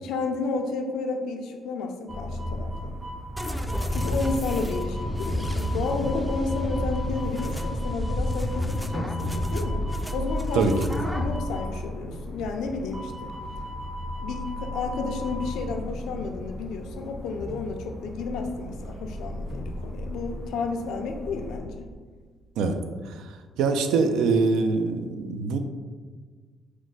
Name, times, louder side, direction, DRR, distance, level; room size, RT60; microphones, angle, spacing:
voice 1, 0.0-2.9 3.9-9.8 10.1-13.3 14.2-21.9, left 4 dB, 85° left, 4 dB, 0.4 m, -32 dB
sound 1, 2.1-21.6, left 1 dB, 40° right, 1.3 m, -35 dB
sound 2, 3.4-11.4, equal, 5° left, 0.3 m, -30 dB
voice 2, 23.6-25.6, right 4 dB, 90° right, 7 dB, 0.3 m, -23 dB
4.5 x 2.1 x 4.0 m, 1.5 s
cardioid pair, 90°, 0 cm